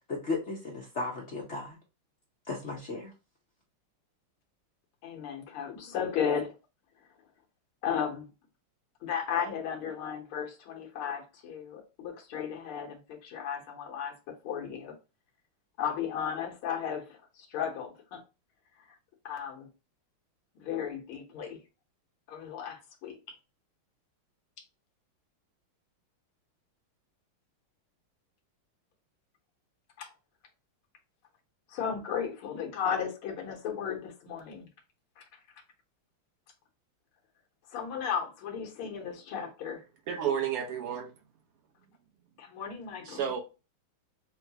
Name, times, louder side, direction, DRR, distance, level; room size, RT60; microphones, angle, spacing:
voice 1, 0.1-1.8 2.5-3.1, left 3 dB, 60° left, 0.7 m, -35 dB
voice 2, 5.0-6.5 7.8-8.3 9.0-14.2 14.4-14.9 15.8-18.2 19.3-19.7 20.6-21.6 22.3-23.2 30.0-30.1 31.7-34.7 35.2-35.3 37.7-39.8 42.4-43.3, left 7 dB, 75° left, 2.0 m, -35 dB
voice 3, 40.1-41.1 43.1-43.4, right 8 dB, 90° right, 2.0 m, -31 dB
6.3 x 2.3 x 2.8 m
omnidirectional pair, 2.4 m